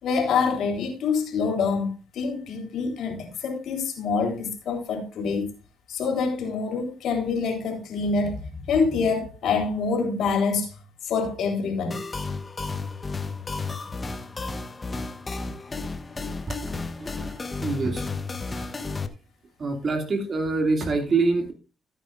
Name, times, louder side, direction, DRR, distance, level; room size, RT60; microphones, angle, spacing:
voice 1, 0.0-5.5 5.9-10.7 11.0-12.0, left 5 dB, 75° left, 3.8 m, -26 dB
sound 1, 11.9-19.1, left 3 dB, 30° left, 1.1 m, -33 dB
voice 2, 17.0-17.3 17.6-18.1 18.4-18.6 19.6-21.5, right 3 dB, 45° right, 2.5 m, -25 dB
15.5 x 9.0 x 2.5 m
cardioid pair, 90°, 0 cm